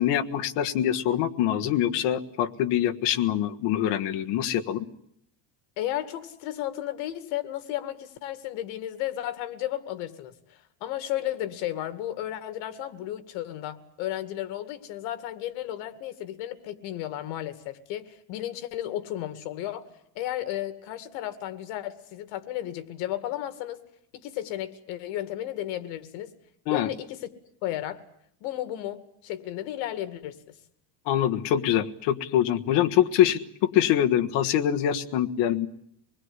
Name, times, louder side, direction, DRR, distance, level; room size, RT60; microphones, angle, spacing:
voice 1, 0.0-4.8 26.7-26.9 31.1-35.7, left 11 dB, 65° left, 6 dB, 1.5 m, -24 dB
voice 2, 5.8-19.9 20.2-23.8 24.1-26.3 26.7-27.3 27.6-28.0 28.4-30.5, left 13 dB, 85° left, 11 dB, 2.3 m, -34 dB
25.0 x 20.5 x 9.7 m, 0.72 s
cardioid pair, 170°, 45 cm